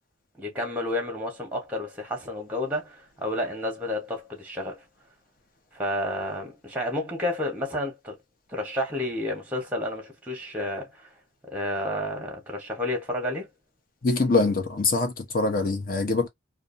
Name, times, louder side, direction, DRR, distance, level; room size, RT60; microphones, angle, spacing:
voice 1, 0.4-4.8 5.7-8.2 8.5-11.1 11.5-13.5, left 1 dB, 10° right, 1.0 m, -30 dB
voice 2, 14.0-16.3, left 3 dB, 50° left, 0.8 m, -24 dB
2.6 x 2.3 x 2.5 m
head